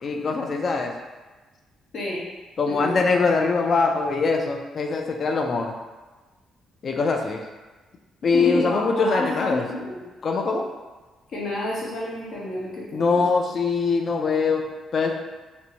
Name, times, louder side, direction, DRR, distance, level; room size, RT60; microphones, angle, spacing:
voice 1, 0.0-0.9 2.6-5.8 6.8-7.4 8.2-9.7 10.2-10.7 12.9-15.1, left 4 dB, 50° left, 3 dB, 0.3 m, -23 dB
voice 2, 8.3-10.0 11.3-13.2, left 1 dB, 65° left, -5 dB, 0.8 m, -29 dB
2.6 x 2.1 x 2.8 m, 1.2 s
cardioid pair, 90°, 0 cm